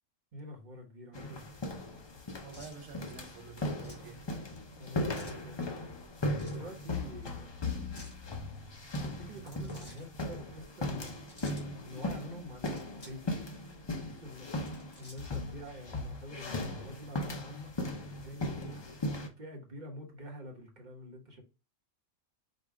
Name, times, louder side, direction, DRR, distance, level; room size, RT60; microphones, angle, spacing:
voice 1, 0.3-1.5 4.7-5.7 6.5-7.5 8.9-11.2 11.7-13.7 14.0-17.7 18.2-19.1 19.4-21.4, equal, 35° right, 1.1 m, -47 dB
sound 1, 1.1-19.3, left 1 dB, 40° left, 0.4 m, -38 dB
voice 2, 2.4-4.3 9.3-9.4 18.5-18.8, right 6 dB, 80° right, 1.3 m, -49 dB
sound 2, 2.5-2.8 3.8-4.1 5.1-5.4 6.3-6.7 7.8-8.2 9.4-10.1 10.9-11.6 12.5-13.2 13.5-13.6 14.5-15.4, equal, 70° left, 2.0 m, -53 dB
5.2 x 2.3 x 3.5 m
omnidirectional pair, 1.3 m